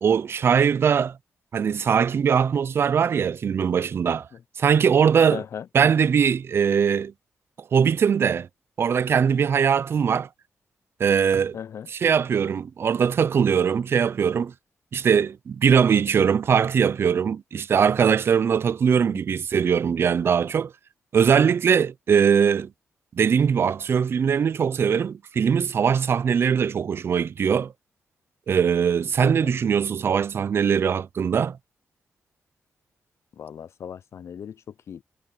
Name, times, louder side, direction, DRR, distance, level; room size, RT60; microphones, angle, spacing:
voice 1, 0.0-1.2 1.5-4.3 4.6-5.4 5.7-7.1 7.7-8.5 8.8-10.3 11.0-11.6 11.9-14.5 14.9-20.7 21.1-22.7 23.1-27.7 28.5-31.6, right 7 dB, 50° right, 0.4 m, -21 dB
voice 2, 5.3-5.7 11.5-11.9 21.4-21.5 29.2-29.5 33.3-35.0, left 8 dB, 60° left, 0.5 m, -37 dB
wide cardioid pair, 130°, 5 cm